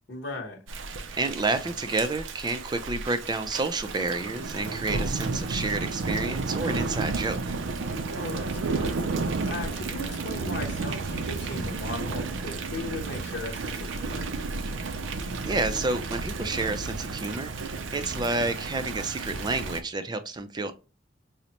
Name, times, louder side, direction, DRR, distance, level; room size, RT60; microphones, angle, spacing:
voice 1, 0.1-0.6 8.1-9.0 9.5-14.3, left 2 dB, 60° left, 1.0 m, -37 dB
Thunder / Rain, 0.7-19.8, right 3 dB, 85° right, 0.5 m, -32 dB
voice 2, 1.2-7.5 15.4-20.7, right 3 dB, 20° right, 0.4 m, -30 dB
5.1 x 2.1 x 2.8 m
head